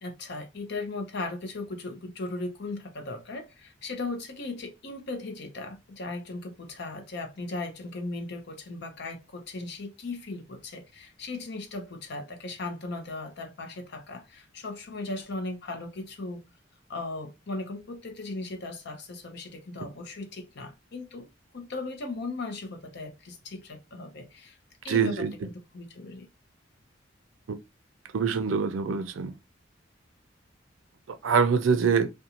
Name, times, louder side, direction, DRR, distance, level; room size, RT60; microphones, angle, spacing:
voice 1, 0.0-16.4 16.9-21.3 21.5-24.6 24.8-25.3 25.7-26.3, left 2 dB, 60° left, 0.7 m, -37 dB
voice 2, 24.9-25.5 27.5-27.6 28.1-29.3 31.1-32.1, right 6 dB, 90° right, 0.4 m, -25 dB
2.5 x 2.2 x 2.8 m
head